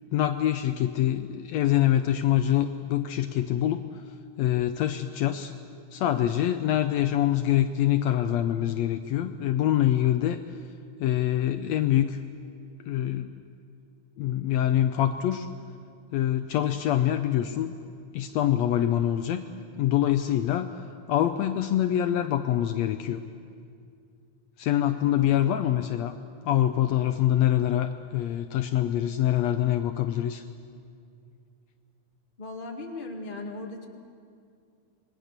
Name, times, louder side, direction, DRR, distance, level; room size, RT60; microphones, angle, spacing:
voice 1, 0.1-4.0 4.4-5.5 5.9-10.4 11.0-12.2 12.9-13.3 14.2-15.5 16.1-17.7 18.1-19.4 19.8-20.7 21.1-23.2 24.6-26.1 26.5-30.4, left 12 dB, 75° left, 8 dB, 1.8 m, -25 dB
voice 2, 25.0-25.4 32.4-33.9, left 2 dB, 20° left, 1 dB, 2.0 m, -37 dB
27.5 x 20.5 x 6.7 m, 2.4 s
omnidirectional pair, 3.3 m